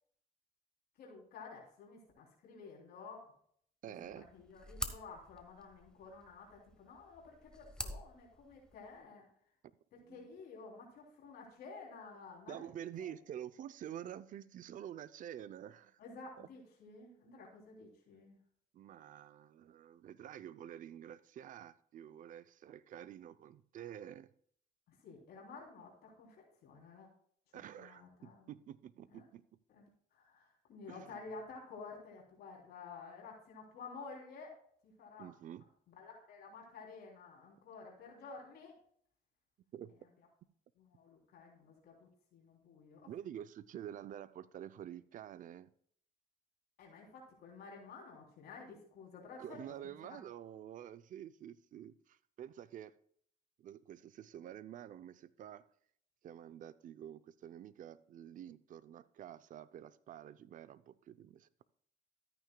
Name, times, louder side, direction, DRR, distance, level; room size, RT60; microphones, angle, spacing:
voice 1, 1.0-3.3 4.0-9.3 10.1-12.7 13.0-13.1 16.0-18.4 24.9-26.4 26.6-27.1 27.8-28.5 29.1-29.3 29.7-34.5 34.8-35.3 36.0-38.7 40.8-43.1 46.8-49.6 50.0-50.2, left 4 dB, 65° left, -1 dB, 3.3 m, -52 dB
voice 2, 3.8-4.3 10.0-10.3 12.5-16.0 16.4-16.5 18.7-24.3 27.5-29.4 30.9-31.2 35.2-35.7 39.7-39.9 43.1-45.7 49.4-52.9 53.6-55.7 56.2-61.5, right 10 dB, 50° right, 15 dB, 0.6 m, -49 dB
sound 1, 4.0-9.0, left 1 dB, 5° left, 1.1 m, -47 dB
13.5 x 9.2 x 2.3 m, 0.62 s
cardioid pair, 110°, 17 cm